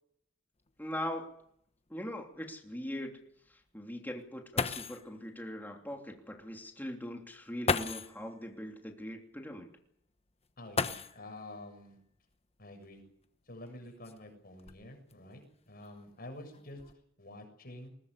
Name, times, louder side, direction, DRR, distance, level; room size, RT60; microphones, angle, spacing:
sound 1, 0.7-0.8 1.1-1.2 1.9-2.0 4.2-4.3 4.6-5.1 6.4-6.5 7.6-8.2 10.7-11.5 12.8-12.9 13.7-15.1 15.8-16.2 16.5-16.9, left 4 dB, 30° left, 1.1 m, -35 dB
voice 1, 0.8-1.3 1.9-3.2 3.5-9.7, left 1 dB, 10° left, 2 dB, 3.1 m, -41 dB
voice 2, 10.6-12.0 12.6-13.0 13.5-17.9, left 1 dB, 50° left, 5 dB, 7.1 m, -49 dB
21.5 x 20.0 x 8.3 m, 0.70 s
head